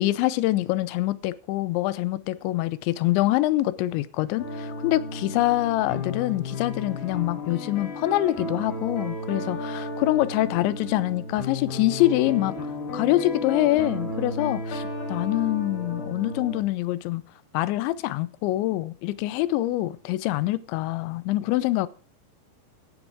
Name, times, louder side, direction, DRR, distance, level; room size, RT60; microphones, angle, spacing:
voice 1, 0.0-12.6 12.9-17.2 17.5-21.9, left 16 dB, 90° left, 3.1 m, -25 dB
sound 1, 4.4-16.6, left 2 dB, 60° left, 6.4 m, -33 dB
16.0 x 11.5 x 3.6 m
omnidirectional pair, 5.1 m